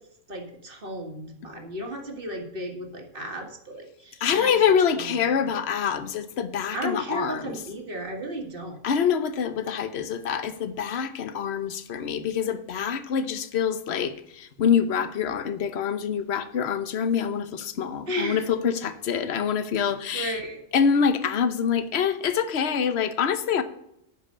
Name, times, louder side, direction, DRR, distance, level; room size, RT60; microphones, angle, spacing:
voice 1, 0.3-4.6 4.9-5.6 6.7-8.8 18.1-18.5 20.1-20.6, equal, 40° right, 1.9 m, -34 dB
voice 2, 4.2-7.6 8.8-20.4 20.7-23.6, left 7 dB, 55° left, 1.1 m, -25 dB
10.5 x 5.4 x 8.5 m
omnidirectional pair, 1.4 m